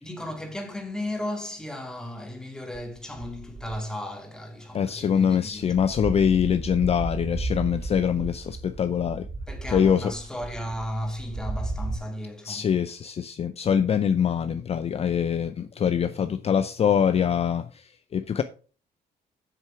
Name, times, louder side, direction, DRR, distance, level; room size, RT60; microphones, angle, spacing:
voice 1, 0.0-5.7 9.5-12.7, left 1 dB, 5° left, 2.1 m, -35 dB
sound 1, 2.7-3.9 4.6-4.8 5.1-12.0, right 2 dB, 35° right, 5.1 m, -34 dB
voice 2, 4.7-9.3 9.7-10.1 12.4-18.4, left 8 dB, 40° left, 0.5 m, -24 dB
7.6 x 6.5 x 4.9 m
cardioid pair, 110°, 16 cm